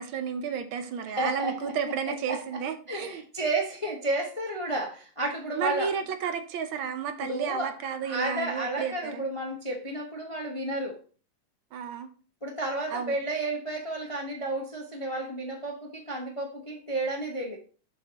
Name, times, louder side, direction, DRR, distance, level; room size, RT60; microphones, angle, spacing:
voice 1, 0.0-3.2 5.5-9.3 11.7-12.1 12.9-13.2, right 7 dB, 75° right, 8 dB, 1.6 m, -32 dB
voice 2, 1.1-1.9 2.3-2.4 2.9-5.9 7.2-7.7 8.1-11.0 12.4-17.6, right 2 dB, 30° left, 0 dB, 0.6 m, -32 dB
6.9 x 6.6 x 2.9 m, 0.39 s
omnidirectional pair, 2.3 m